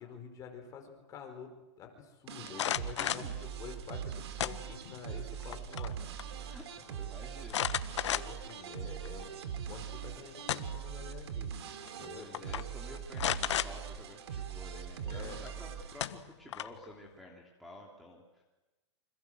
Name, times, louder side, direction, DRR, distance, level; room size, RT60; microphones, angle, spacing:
voice 1, 0.0-6.0 8.0-11.5 11.9-12.3 12.5-12.6 15.0-15.4, left 7 dB, 20° left, 4 dB, 4.7 m, -48 dB
sound 1, 2.3-16.1, right 8 dB, 65° right, 3.4 m, -41 dB
sound 2, 2.5-3.3 4.4-5.0 5.4-5.9 6.2-6.3 7.5-8.5 9.0-9.1 10.2-10.9 11.9-12.0 12.3-12.6 13.2-13.7 15.5-15.6 16.0-16.8, left 11 dB, 75° left, 1.3 m, -33 dB
voice 2, 3.0-3.5 6.5-7.7 12.1-18.4, left 1 dB, ahead, -4 dB, 3.2 m, -51 dB
28.5 x 26.0 x 8.0 m, 1.1 s
supercardioid pair, 160°, 15 cm